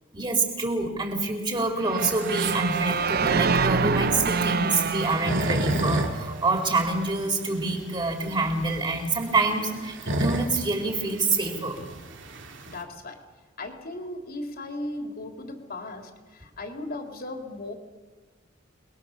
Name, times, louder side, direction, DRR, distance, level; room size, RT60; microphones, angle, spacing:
voice 1, 0.1-11.8, right 3 dB, 25° right, 2 dB, 4.4 m, -26 dB
sound 1, 1.8-6.8, right 5 dB, 50° right, 0.8 m, -26 dB
sound 2, 2.0-12.8, right 1 dB, 65° right, 2.7 m, -32 dB
voice 2, 12.6-13.2 13.6-17.7, left 2 dB, 50° left, 3 dB, 3.7 m, -37 dB
28.5 x 22.0 x 7.2 m, 1.3 s
head